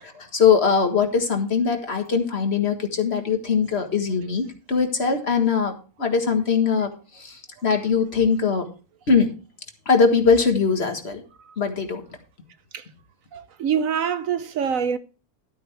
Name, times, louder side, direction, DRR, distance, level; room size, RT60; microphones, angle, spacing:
voice 1, 0.0-5.7 6.0-8.6 9.1-9.3 9.8-11.2 11.6-12.0, left 5 dB, 45° left, 1.8 m, -21 dB
voice 2, 13.3-15.0, right 7 dB, 65° right, 1.1 m, -25 dB
13.0 x 8.5 x 3.4 m
omnidirectional pair, 1.5 m